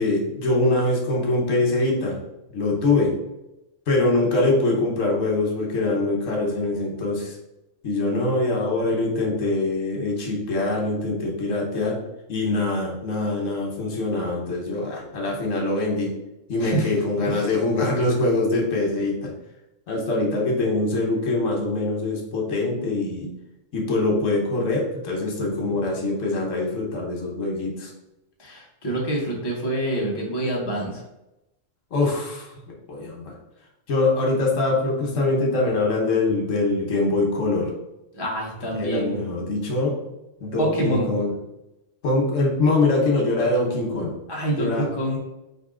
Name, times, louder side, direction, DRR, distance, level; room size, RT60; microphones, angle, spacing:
voice 1, 0.0-2.2 2.5-3.1 3.9-7.4 7.8-12.0 12.3-16.1 16.5-19.3 19.9-23.3 23.7-27.9 31.9-32.5 32.9-33.3 33.9-37.7 38.8-39.9 40.4-41.3 42.0-44.1 44.6-44.8, left 2 dB, 80° left, -1 dB, 1.3 m, -23 dB
voice 2, 28.4-31.0 38.1-39.1 40.6-41.1 44.3-45.2, right 1 dB, 20° left, -2 dB, 0.9 m, -26 dB
4.6 x 2.7 x 3.7 m, 0.93 s
omnidirectional pair, 1.3 m